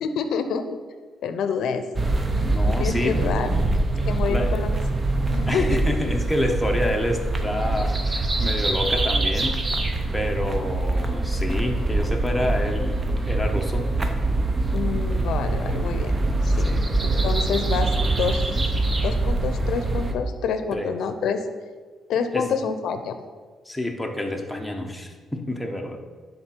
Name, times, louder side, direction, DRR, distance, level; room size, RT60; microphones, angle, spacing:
voice 1, 0.0-0.8 1.2-1.8 2.7-3.5 4.1-4.7 5.3-5.8 14.7-16.8 17.2-18.7 19.0-21.4 22.1-23.1, left 6 dB, 75° left, 9 dB, 0.6 m, -27 dB
sound 1, 2.0-20.1, right 2 dB, 25° right, 0.7 m, -24 dB
voice 2, 2.4-3.3 4.3-4.7 5.5-9.6 10.1-13.0 13.3-13.9 16.7-16.9 20.7-20.9 22.3-22.5 23.7-26.0, left 1 dB, 5° left, 2 dB, 1.0 m, -28 dB
10.5 x 4.0 x 4.4 m, 1.5 s
cardioid pair, 90°, 0 cm